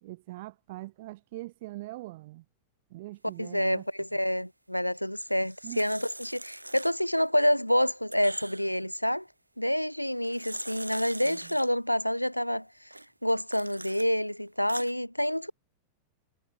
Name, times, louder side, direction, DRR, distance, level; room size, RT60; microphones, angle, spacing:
voice 1, 0.0-2.4 2.9-3.8 5.6-5.8 11.2-11.6, right 19 dB, 50° right, 2.4 m, -42 dB
voice 2, 3.4-9.2 9.6-12.7 13.2-15.5, equal, 90° left, 0.3 m, -28 dB
sound 1, 5.1-7.3 7.7-8.8 10.0-11.7 12.9-14.1 14.5-14.9, right 2 dB, 85° right, 0.5 m, -43 dB
figure-of-eight pair, 90°, 0 cm